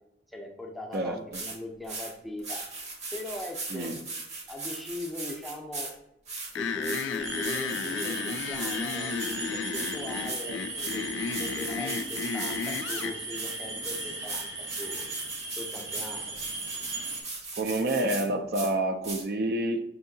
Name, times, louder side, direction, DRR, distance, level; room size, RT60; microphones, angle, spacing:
voice 1, 0.3-2.6 3.1-3.9 4.5-5.9 6.5-15.1 15.5-16.4, left 1 dB, ahead, 1 dB, 0.5 m, -40 dB
sound 1, 0.9-1.0 1.3-1.6 1.8-2.1 2.4-5.9 6.3-9.4 9.7-9.9 10.2-10.4 10.8-11.0 11.3-13.1 13.3-18.3 18.5-18.7 19.0-19.2, right 3 dB, 35° right, 0.8 m, -38 dB
voice 2, 0.9-1.4 3.7-4.0 17.6-19.8, right 1 dB, 55° right, 6 dB, 0.4 m, -28 dB
sound 2, 6.6-13.2, left 5 dB, 80° left, 0.3 m, -33 dB
sound 3, 7.2-17.2, right 2 dB, 90° right, 1.0 m, -38 dB
5.7 x 2.7 x 2.6 m, 0.82 s
head